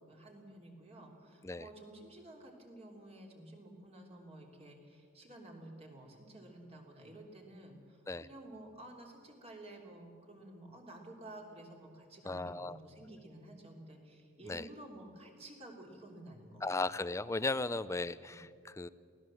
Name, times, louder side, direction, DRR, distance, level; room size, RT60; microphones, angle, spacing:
voice 1, 0.1-16.7 18.2-18.4, right 1 dB, 30° right, 1 dB, 3.2 m, -52 dB
voice 2, 12.2-12.8 14.5-14.6 16.6-18.9, left 2 dB, 15° left, 16 dB, 0.5 m, -36 dB
23.5 x 17.0 x 7.6 m, 2.4 s
head